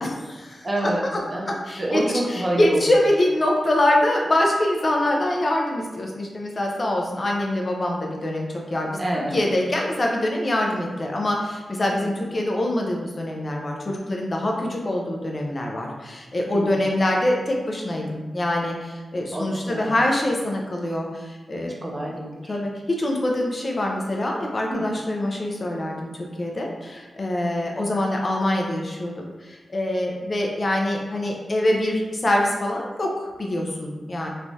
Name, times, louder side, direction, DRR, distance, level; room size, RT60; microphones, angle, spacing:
voice 1, 0.0-1.2 1.4-2.0 2.3-9.0 9.3-21.7 22.5-26.1 26.4-34.3, left 1 dB, 35° left, 0 dB, 0.4 m, -24 dB
voice 2, 0.6-1.5 1.8-2.9 9.0-9.5 11.9-12.1 16.5-16.8 19.3-19.9 21.8-22.6 24.7-24.8, right 1 dB, 30° right, -3 dB, 0.5 m, -27 dB
3.0 x 2.2 x 2.6 m, 1.2 s
wide cardioid pair, 130°, 0 cm